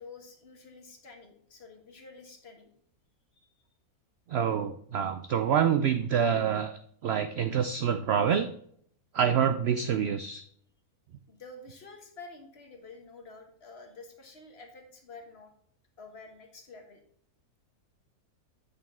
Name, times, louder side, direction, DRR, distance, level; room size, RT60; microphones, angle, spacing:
voice 1, 0.0-2.7 3.4-3.5 11.3-15.5 16.0-17.0, left 3 dB, 45° left, 4 dB, 1.4 m, -49 dB
voice 2, 4.3-8.5 9.1-10.4, right 8 dB, 70° right, 9 dB, 0.6 m, -27 dB
8.4 x 6.7 x 3.6 m, 0.64 s
omnidirectional pair, 1.6 m